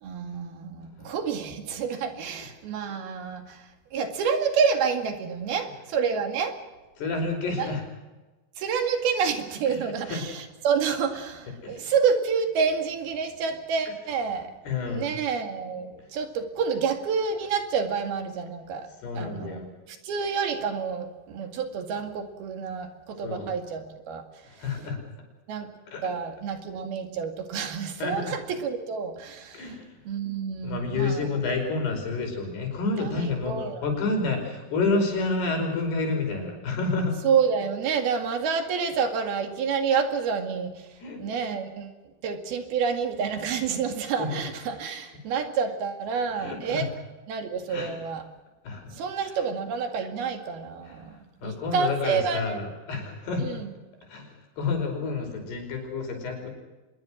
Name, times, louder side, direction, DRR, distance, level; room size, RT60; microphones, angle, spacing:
voice 1, 0.0-6.6 7.6-7.7 8.6-14.5 14.9-18.9 19.2-19.6 19.9-24.2 25.5-25.7 26.0-29.7 30.1-31.4 33.0-33.9 37.2-40.9 41.2-41.9 42.2-46.9 47.3-48.2 48.9-52.6 53.4-53.7, right 6 dB, 75° right, 6 dB, 4.0 m, -28 dB
voice 2, 7.0-7.8 9.7-10.2 11.6-11.9 14.7-15.1 19.0-19.7 23.2-23.5 24.5-25.0 25.9-26.1 28.0-28.4 29.5-30.0 30.6-33.6 33.8-37.2 41.0-41.2 43.6-43.7 44.2-44.4 46.4-46.8 47.7-48.0 48.6-48.9 50.9-51.0 51.4-53.6 54.1-56.5, left 3 dB, 85° left, 3 dB, 7.1 m, -29 dB
25.0 x 21.5 x 6.4 m, 1.1 s
omnidirectional pair, 4.5 m